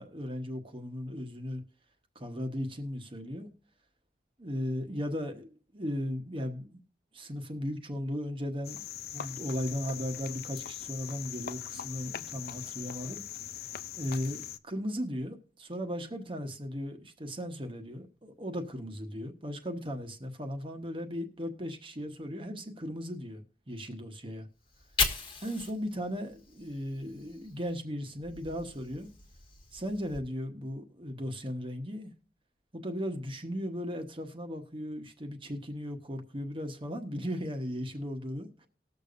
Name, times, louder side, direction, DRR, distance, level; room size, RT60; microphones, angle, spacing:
voice 1, 0.0-1.6 2.1-3.5 4.4-6.8 7.1-8.8 9.1-13.2 13.5-14.4 14.7-24.5 25.4-29.1 29.7-32.1 32.7-38.7, equal, 30° right, 1.2 m, -37 dB
Cricket, 8.6-14.6, left 10 dB, 60° left, 0.5 m, -41 dB
Fire, 24.6-27.8 28.1-30.2, left 4 dB, 30° left, 1.4 m, -37 dB
19.5 x 6.8 x 2.6 m
head